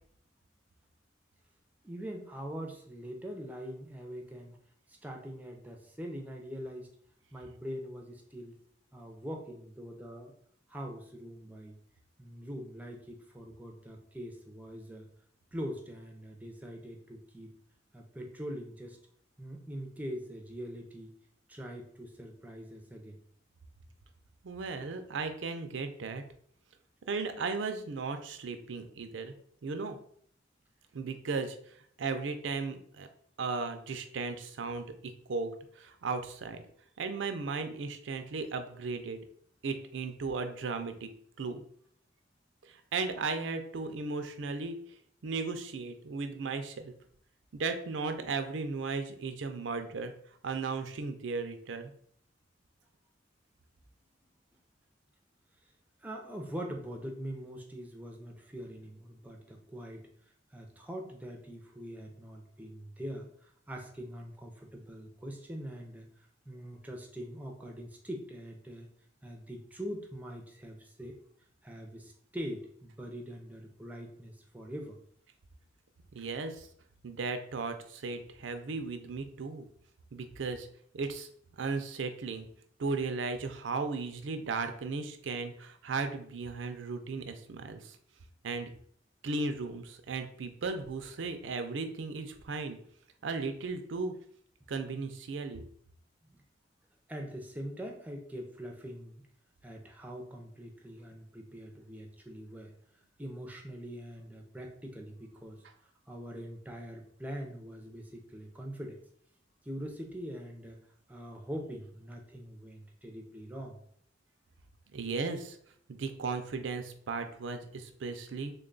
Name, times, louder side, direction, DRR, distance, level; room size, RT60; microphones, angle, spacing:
voice 1, 1.8-4.6 4.9-6.9 7.3-8.6 8.9-10.3 10.7-11.8 12.2-15.1 15.5-17.5 17.9-19.0 19.4-21.1 21.5-23.2 56.0-60.1 60.5-66.1 66.5-68.9 69.2-71.2 71.6-75.0 96.3-96.4 97.1-99.2 99.6-102.7 103.2-105.6 106.1-109.0 109.6-110.8 111.1-113.8, equal, 10° right, 1 dB, 0.5 m, -43 dB
voice 2, 24.4-26.2 27.1-29.3 29.6-30.0 30.9-33.1 33.4-36.6 37.0-39.3 39.6-41.1 41.4-41.6 42.6-44.8 45.2-46.9 47.5-50.1 50.4-51.9 76.1-76.7 77.0-79.7 80.1-80.7 80.9-81.3 81.6-82.5 82.8-88.0 88.4-88.7 89.2-92.8 93.2-94.1 94.7-95.6 114.9-115.6 115.9-118.5, right 4 dB, 75° right, 7 dB, 0.5 m, -36 dB
3.4 x 2.3 x 3.8 m, 0.62 s
head